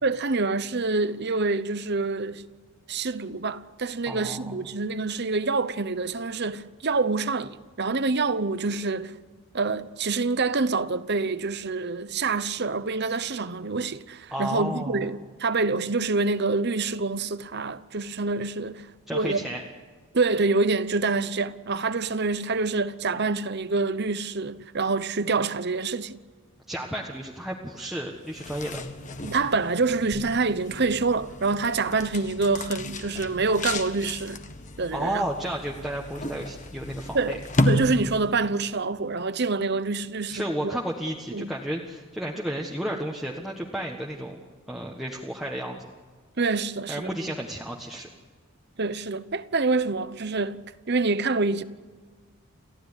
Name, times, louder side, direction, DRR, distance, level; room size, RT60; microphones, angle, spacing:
voice 1, 0.0-2.4 2.9-9.1 9.5-19.5 20.1-26.2 29.2-34.4 34.8-35.3 37.1-37.4 37.6-40.7 41.3-41.5 46.4-47.1 48.8-51.6, right 3 dB, 50° right, 0.9 m, -26 dB
voice 2, 4.1-4.6 14.3-15.1 19.1-19.6 26.7-28.8 34.9-37.4 40.3-44.4 44.7-45.8 46.9-48.1, right 1 dB, ahead, 1.5 m, -32 dB
sound 1, 28.2-38.5, left 1 dB, 35° left, 1.5 m, -32 dB
29.5 x 15.0 x 9.9 m
head